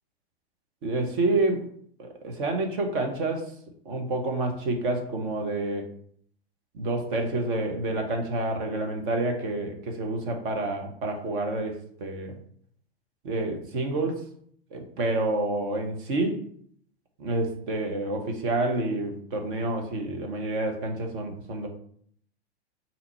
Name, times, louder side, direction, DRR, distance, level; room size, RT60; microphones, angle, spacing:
voice 1, 0.8-1.6 2.0-3.5 3.8-5.9 6.7-12.3 13.2-14.2 14.7-16.4 17.2-21.7, right 2 dB, 50° right, 3 dB, 1.2 m, -28 dB
3.9 x 2.9 x 4.3 m, 0.62 s
hypercardioid pair, 105°, 32 cm